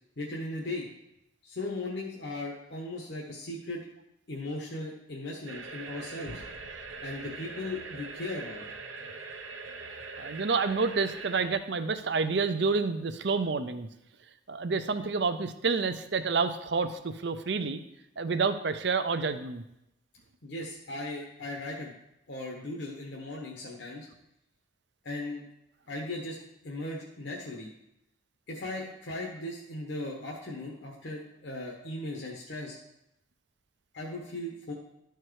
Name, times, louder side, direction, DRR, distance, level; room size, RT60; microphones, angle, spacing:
voice 1, 0.2-0.9 1.4-3.8 4.3-6.4 7.0-8.8 20.4-21.9 22.3-24.1 25.0-25.4 25.9-26.4 26.6-27.7 28.5-32.8 33.9-34.7, left 2 dB, 60° left, -2 dB, 1.2 m, -37 dB
sound 1, 5.5-11.5, right 4 dB, 75° right, 0.9 m, -42 dB
voice 2, 10.2-13.9 14.5-17.8 18.2-19.6, right 4 dB, 60° right, 10 dB, 0.6 m, -29 dB
12.0 x 4.7 x 4.7 m, 0.83 s
head